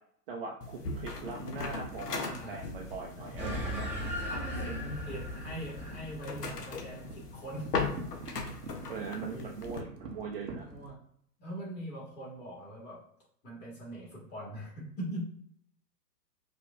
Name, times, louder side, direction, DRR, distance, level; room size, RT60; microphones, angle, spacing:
voice 1, 0.3-2.2 2.5-3.9 8.9-10.6, right 4 dB, 35° right, 0 dB, 0.6 m, -41 dB
sound 1, 0.6-9.8, left 4 dB, 70° left, 0.9 m, -39 dB
sound 2, 1.0-10.9, right 3 dB, 75° right, 0.9 m, -47 dB
voice 2, 2.2-2.6 4.3-8.5 8.7-8.9 9.1-9.5 10.6-11.0 11.4-13.1 13.4-15.2, right 1 dB, 20° left, -4 dB, 1.5 m, -42 dB
sound 3, 3.4-8.1, equal, 5° right, 1.2 m, -38 dB
4.9 x 2.4 x 2.4 m, 0.66 s
figure-of-eight pair, 110°, 49 cm